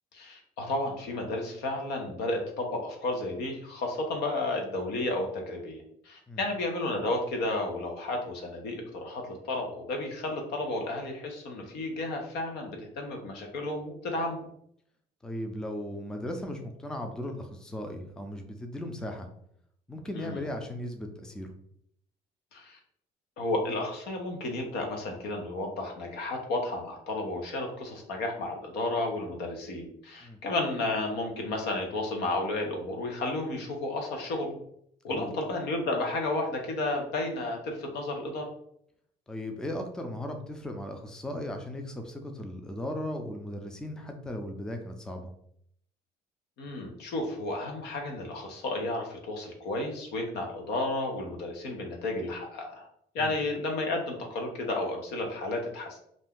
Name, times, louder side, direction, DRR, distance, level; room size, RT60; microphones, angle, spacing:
voice 1, 0.1-14.4 20.1-20.4 22.5-22.8 23.4-34.6 35.0-38.5 46.6-52.9 53.1-56.0, left 2 dB, 80° left, 2 dB, 0.8 m, -32 dB
voice 2, 15.2-19.3 19.9-21.5 30.2-30.4 35.1-35.3 39.3-45.3 53.2-53.3, left 1 dB, 5° left, 4 dB, 0.4 m, -37 dB
2.5 x 2.2 x 3.5 m, 0.70 s
cardioid pair, 110°, 17 cm